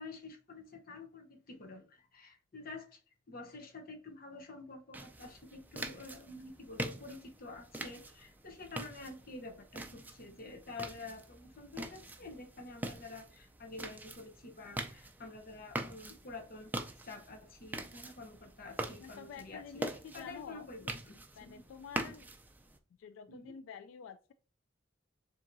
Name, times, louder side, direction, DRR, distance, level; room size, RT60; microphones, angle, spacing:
voice 1, 0.0-3.0 3.3-16.7 17.0-19.8 20.1-21.6 23.3-23.5, left 3 dB, 50° left, 0.8 m, -49 dB
sound 1, 4.9-22.8, right 1 dB, 10° right, 0.4 m, -44 dB
voice 2, 19.0-20.7 21.4-22.3 23.0-24.3, left 7 dB, 85° left, 0.3 m, -49 dB
7.2 x 2.8 x 2.6 m
head